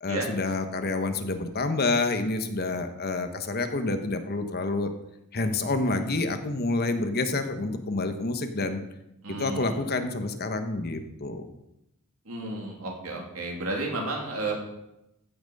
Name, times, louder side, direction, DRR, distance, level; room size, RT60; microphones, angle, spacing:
voice 1, 0.0-4.9 5.3-8.8 9.3-11.5, left 2 dB, 45° left, 8 dB, 1.1 m, -28 dB
voice 2, 9.2-9.9 12.2-14.6, right 2 dB, 75° right, 0 dB, 2.9 m, -32 dB
15.5 x 6.0 x 5.4 m, 0.87 s
head